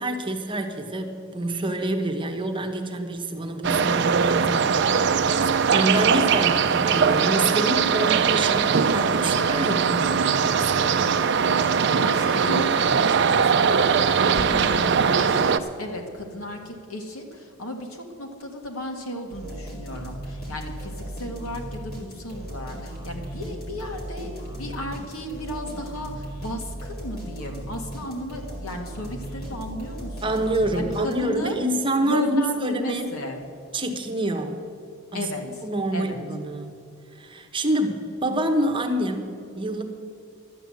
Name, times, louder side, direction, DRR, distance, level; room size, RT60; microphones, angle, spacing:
voice 1, 0.0-5.1 5.7-11.2 30.2-33.1 33.7-34.6 35.1-35.3 35.6-36.8 37.1-39.8, right 1 dB, 25° right, 4 dB, 1.0 m, -27 dB
sound 1, 3.6-15.6, right 6 dB, 50° right, 0.5 m, -21 dB
voice 2, 4.9-5.4 12.0-15.5 15.8-30.4 30.7-31.6 32.0-33.4 35.1-35.4 35.9-36.2, left 1 dB, 80° left, 3 dB, 1.9 m, -34 dB
sound 2, 19.3-31.5, right 1 dB, 45° left, 3.2 m, -37 dB
12.5 x 8.9 x 7.7 m, 2.5 s
head